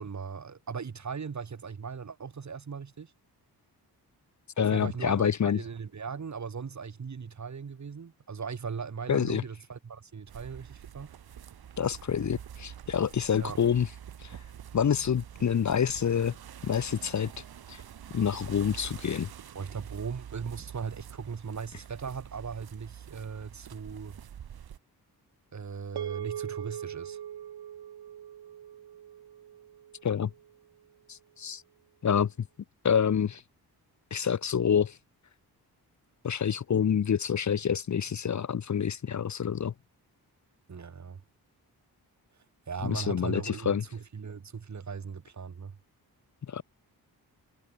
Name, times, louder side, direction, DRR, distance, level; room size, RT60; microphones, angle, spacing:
voice 1, 0.0-3.1 4.6-11.1 13.4-13.6 19.5-24.2 25.5-27.2 40.7-41.2 42.7-45.8, right 6 dB, 45° right, 2.3 m, -38 dB
voice 2, 4.6-5.6 9.1-9.4 11.8-13.9 14.2-14.3 14.7-16.4 16.6-17.3 17.7-17.8 18.1-19.3 30.0-30.3 31.1-31.6 32.0-32.5 32.8-33.4 34.1-35.0 36.2-39.7 42.8-43.8 46.5-46.6, left 8 dB, 45° left, 0.8 m, -27 dB
sound 1, 10.3-24.8, right 9 dB, 70° right, 1.4 m, -46 dB
sound 2, 26.0-30.5, right 10 dB, 90° right, 1.6 m, -40 dB
wide cardioid pair, 95°, 38 cm